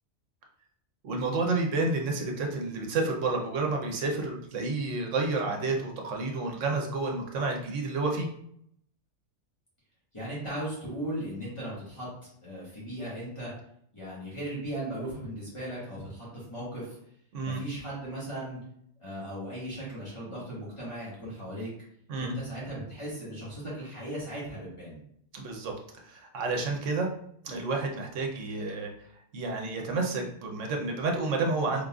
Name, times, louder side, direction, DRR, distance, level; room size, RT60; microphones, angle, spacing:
voice 1, 1.0-8.3 17.3-17.6 22.1-22.4 25.3-25.7 26.1-27.1 27.4-28.9 29.3-31.8, right 3 dB, 80° right, 1 dB, 1.1 m, -30 dB
voice 2, 10.1-12.1 12.4-13.5 13.9-17.0 17.4-18.6 19.0-21.7 22.2-25.0, right 1 dB, 25° left, -8 dB, 1.7 m, -37 dB
3.8 x 3.7 x 2.4 m, 0.69 s
omnidirectional pair, 1.3 m